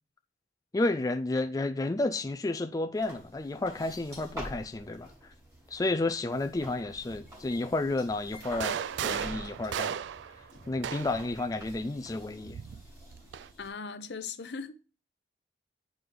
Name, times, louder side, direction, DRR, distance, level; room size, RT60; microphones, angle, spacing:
voice 1, 0.7-5.3 5.7-10.0 10.7-12.6, left 2 dB, 20° left, 0.3 m, -31 dB
sound 1, 2.9-13.7, equal, 15° right, 3.0 m, -48 dB
sound 2, 6.4-12.5, equal, 50° right, 2.9 m, -57 dB
sound 3, 8.4-11.3 12.4-13.5, right 8 dB, 75° right, 0.3 m, -35 dB
voice 2, 13.6-14.8, left 5 dB, 65° left, 0.7 m, -39 dB
9.5 x 4.7 x 3.8 m
head